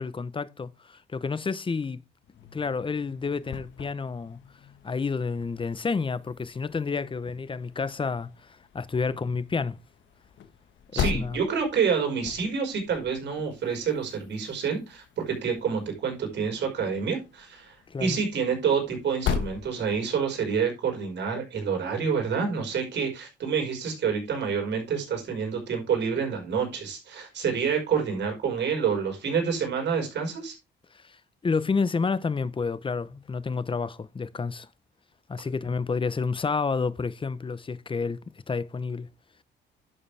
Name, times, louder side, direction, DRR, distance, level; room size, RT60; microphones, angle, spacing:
voice 1, 0.0-2.0 2.5-4.4 4.8-9.8 10.9-11.4 17.9-18.2 30.9-31.2 31.4-34.7 35.3-38.2 38.5-39.1, left 4 dB, 25° left, 0.8 m, -30 dB
sound 1, 2.2-20.3, left 7 dB, 70° left, 1.4 m, -39 dB
voice 2, 10.9-17.7 18.0-30.6, right 6 dB, 60° right, 5.1 m, -28 dB
11.0 x 6.9 x 3.4 m
cardioid pair, 90°, 20 cm